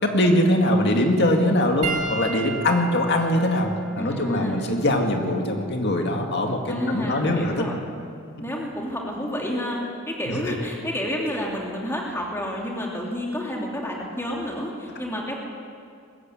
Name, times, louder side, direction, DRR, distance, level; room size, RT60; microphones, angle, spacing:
voice 1, 0.0-7.5 10.3-10.4, left 1 dB, 50° left, 3 dB, 2.1 m, -22 dB
Piano, 1.8-6.5 7.4-7.6 9.6-9.7, right 3 dB, 80° right, 2.2 m, -35 dB
voice 2, 4.0-4.7 6.7-7.8 8.4-15.4, equal, 10° left, -2 dB, 2.8 m, -29 dB
21.0 x 15.0 x 8.9 m, 2.2 s
head